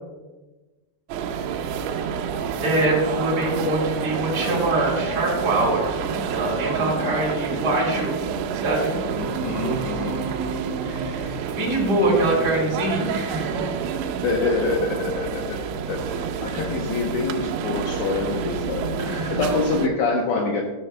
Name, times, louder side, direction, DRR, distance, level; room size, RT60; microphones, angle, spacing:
sound 1, 1.1-19.9, right 7 dB, 80° right, 3.2 m, -29 dB
voice 1, 2.6-8.2 8.5-8.9 10.8-13.7 16.4-16.6 19.0-19.4, right 1 dB, 25° right, -4 dB, 2.8 m, -24 dB
voice 2, 9.1-10.3 14.2-15.6 15.9-19.0 19.3-20.6, left 3 dB, 75° left, 0 dB, 2.7 m, -26 dB
sound 2, 9.1-11.7, right 3 dB, 60° right, 2.8 m, -33 dB
14.0 x 12.5 x 2.2 m, 1.2 s
omnidirectional pair, 5.9 m